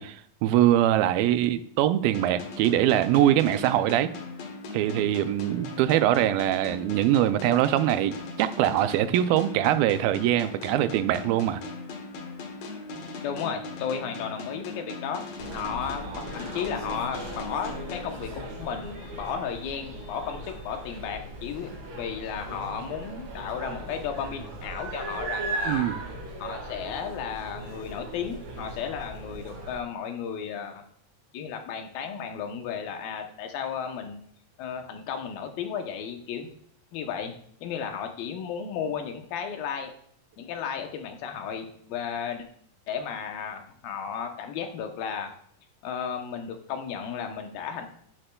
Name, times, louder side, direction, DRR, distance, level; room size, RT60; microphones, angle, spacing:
voice 1, 0.0-4.1 4.7-11.6 25.6-26.0, right 12 dB, 85° right, 11 dB, 2.3 m, -23 dB
sound 1, 2.1-18.7, left 3 dB, 65° left, 1.8 m, -39 dB
voice 2, 13.2-18.3 18.6-25.8 26.4-30.8 31.3-34.2 34.6-36.5 36.9-37.3 37.6-39.9 40.4-42.5 42.9-45.3 45.8-47.9, left 7 dB, 80° left, 5 dB, 2.7 m, -34 dB
sound 2, 15.4-29.8, right 2 dB, 65° right, 3.4 m, -38 dB
10.0 x 9.8 x 2.3 m, 0.63 s
omnidirectional pair, 4.2 m